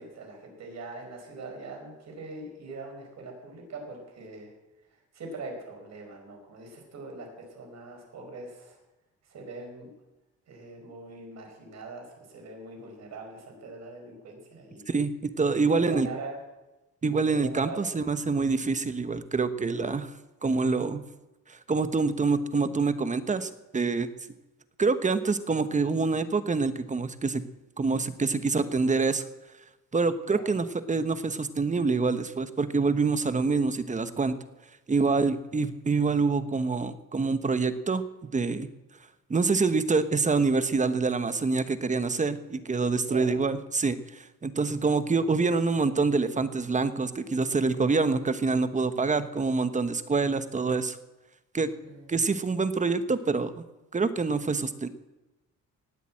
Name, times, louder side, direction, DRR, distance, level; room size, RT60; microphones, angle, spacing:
voice 1, 0.0-4.5 5.1-8.8 9.2-9.9 10.5-14.9 15.7-16.4 17.3-17.8 30.3-30.6 43.0-43.4 51.8-52.1, right 3 dB, 60° right, 2 dB, 5.3 m, -42 dB
voice 2, 14.9-16.1 17.0-20.1 20.4-21.0 21.5-24.1 24.8-27.4 27.8-29.3 29.9-34.3 34.9-38.0 38.3-38.7 39.3-51.0 51.5-51.7 52.1-53.5 53.9-54.9, right 4 dB, 25° right, 11 dB, 1.1 m, -26 dB
18.5 x 8.2 x 7.7 m, 1.0 s
cardioid pair, 90°, 30 cm